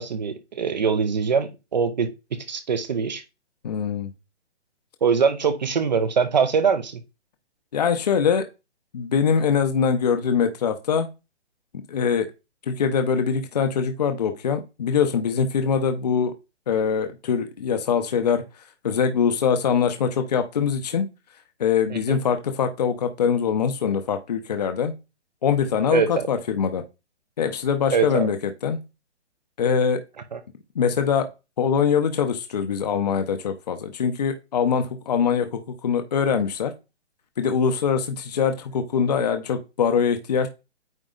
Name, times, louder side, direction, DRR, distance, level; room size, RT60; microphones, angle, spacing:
voice 1, 0.0-2.1 2.5-3.2 5.0-7.0 21.9-22.2 25.9-26.3 27.9-28.3 30.3-30.4, right 6 dB, 40° right, 0.7 m, -23 dB
voice 2, 3.6-4.1 7.7-8.4 8.9-11.1 11.9-12.3 12.7-16.3 16.7-18.4 18.8-21.1 21.6-24.9 25.4-26.8 27.4-28.4 28.6-28.8 29.6-30.0 30.8-31.3 31.6-36.7 37.4-40.5, left 6 dB, 35° left, 0.8 m, -23 dB
9.0 x 3.1 x 3.8 m
hypercardioid pair, 165°, 35 cm